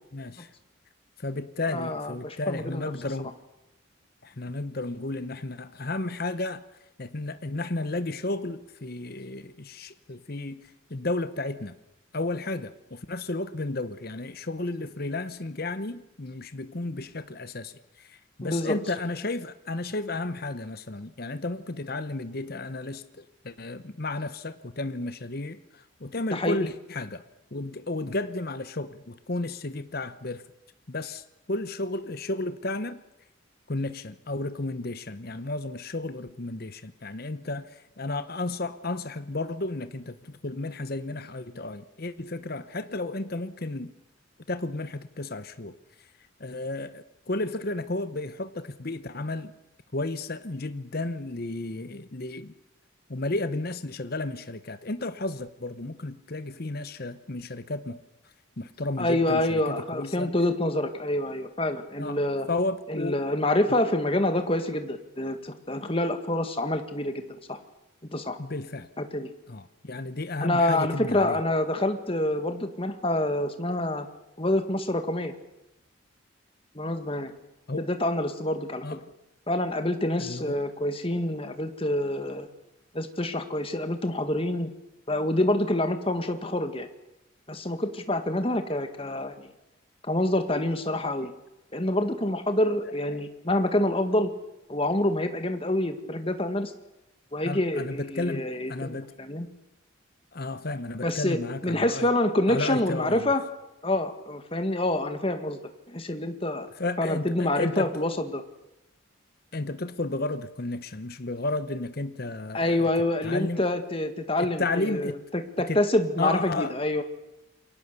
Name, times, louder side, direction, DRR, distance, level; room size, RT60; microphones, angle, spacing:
voice 1, 0.1-0.5 1.2-3.3 4.2-6.6 7.0-10.6 10.9-11.8 12.1-27.2 27.5-30.4 30.9-33.0 33.7-43.9 44.5-45.8 46.4-49.5 49.9-52.5 53.1-58.0 58.6-60.3 62.0-62.2 62.5-63.2 68.4-68.9 69.5-71.4 77.7-77.8 78.8-79.0 80.2-80.6 91.2-91.3 92.8-93.2 97.4-99.1 100.3-102.1 102.5-103.3 106.8-107.9 109.5-112.9 113.2-113.7 114.4-115.2 115.7-115.8 116.2-116.7, left 2 dB, 45° left, 12 dB, 1.0 m, -33 dB
voice 2, 1.7-2.9 18.4-18.8 26.3-26.7 59.0-62.5 62.9-67.6 68.1-68.4 69.0-69.3 70.4-74.1 74.4-75.3 76.8-77.3 77.8-79.0 79.5-82.5 82.9-84.7 85.1-86.9 87.5-89.5 90.0-91.3 91.7-94.3 94.7-96.7 97.3-99.5 101.0-103.4 103.8-105.6 105.9-106.7 107.0-108.4 112.5-117.0, left 1 dB, 25° left, 7 dB, 1.9 m, -27 dB
28.0 x 23.0 x 6.9 m, 0.92 s
head